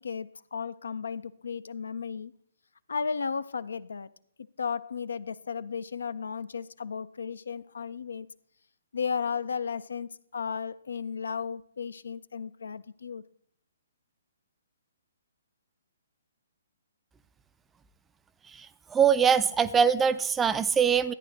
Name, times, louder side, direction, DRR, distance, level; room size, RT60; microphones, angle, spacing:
voice 1, 0.0-2.3 2.9-4.1 4.6-8.3 8.9-13.2, left 6 dB, 65° left, 0.4 m, -34 dB
voice 2, 18.9-21.1, right 7 dB, 10° right, 0.4 m, -22 dB
14.0 x 9.6 x 3.2 m
figure-of-eight pair, 130°, 0 cm